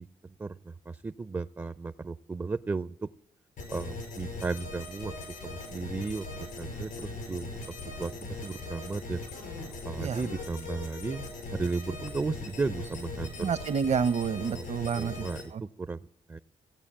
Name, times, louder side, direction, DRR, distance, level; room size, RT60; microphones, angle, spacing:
voice 1, 0.0-3.1 3.7-5.1 5.4-7.5 8.0-9.2 9.8-13.5 14.5-14.6 15.0-16.4, right 4 dB, 20° right, 13 dB, 0.4 m, -35 dB
sound 1, 3.6-15.4, left 3 dB, 85° left, 5.1 m, -40 dB
voice 2, 13.4-15.3 15.5-15.6, right 6 dB, 55° right, 14 dB, 0.7 m, -29 dB
16.0 x 8.5 x 7.3 m, 0.74 s
cardioid pair, 65°, 14 cm